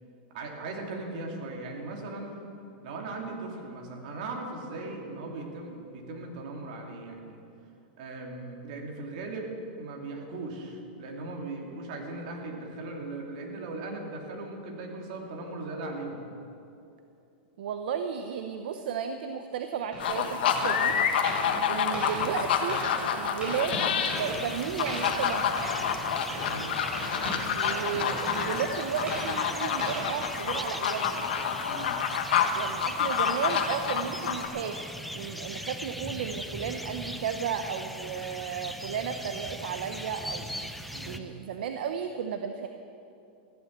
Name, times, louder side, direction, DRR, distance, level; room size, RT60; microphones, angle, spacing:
voice 1, 0.3-2.3 2.8-7.4 8.0-9.5 9.8-16.3 26.5-26.8 31.7-32.0 40.9-41.3, right 2 dB, 50° right, 1 dB, 2.9 m, -38 dB
voice 2, 17.6-21.0 21.7-22.8 23.1-23.8 24.2-25.6 27.5-31.2 32.5-34.8 35.1-42.7, right 7 dB, 70° right, 7 dB, 0.8 m, -34 dB
sound 1, 19.9-31.2, equal, 15° right, 4.4 m, -38 dB
sound 2, 20.0-34.5, left 7 dB, 70° left, 1.4 m, -29 dB
sound 3, 24.1-41.2, equal, ahead, 0.6 m, -40 dB
15.0 x 11.0 x 7.5 m, 2.7 s
supercardioid pair, 160°, 5 cm